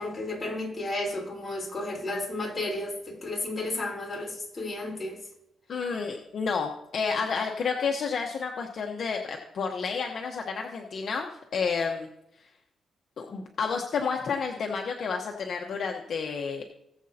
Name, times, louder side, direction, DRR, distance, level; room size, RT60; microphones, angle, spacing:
voice 1, 0.0-5.2, left 2 dB, 20° left, -3 dB, 3.9 m, -33 dB
voice 2, 5.7-12.1 13.2-16.6, left 5 dB, 50° left, 1 dB, 1.0 m, -30 dB
19.0 x 7.6 x 2.8 m, 0.83 s
cardioid pair, 140°, 0 cm